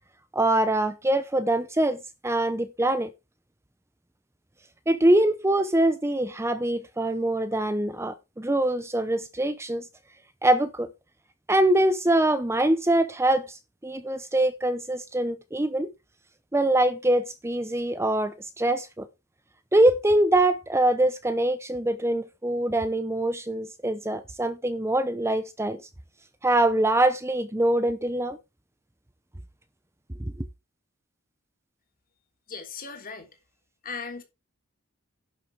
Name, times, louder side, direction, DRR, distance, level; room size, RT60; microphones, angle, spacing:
voice 1, 0.3-2.0 2.2-3.1 4.9-9.8 10.4-10.9 11.5-15.9 16.5-19.1 19.7-25.8 26.4-28.4, right 1 dB, 10° right, 0.7 m, -24 dB
voice 2, 32.5-33.3 33.8-34.2, left 5 dB, 40° left, 3.2 m, -37 dB
11.5 x 7.4 x 4.7 m
head